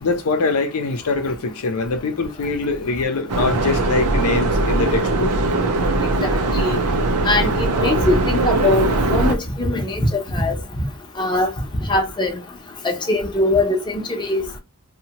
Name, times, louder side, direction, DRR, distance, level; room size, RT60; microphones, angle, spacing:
voice 1, 0.0-5.3, left 3 dB, 80° left, 0.5 m, -23 dB
sound 1, 3.3-9.4, right 2 dB, 85° right, 0.5 m, -20 dB
voice 2, 6.2-6.8 7.2-10.6 11.2-11.5 11.9-12.4 12.8-14.4, left 2 dB, 20° left, 0.6 m, -21 dB
2.7 x 2.2 x 2.8 m
head